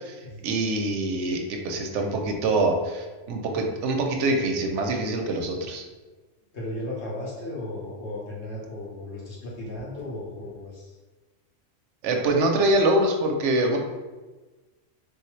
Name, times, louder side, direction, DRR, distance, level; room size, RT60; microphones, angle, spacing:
voice 1, 0.4-5.8 12.0-13.8, right 2 dB, 75° right, 3 dB, 0.9 m, -24 dB
voice 2, 6.5-11.0, left 1 dB, 60° left, -5 dB, 1.3 m, -35 dB
3.4 x 2.7 x 3.1 m, 1.3 s
omnidirectional pair, 1.3 m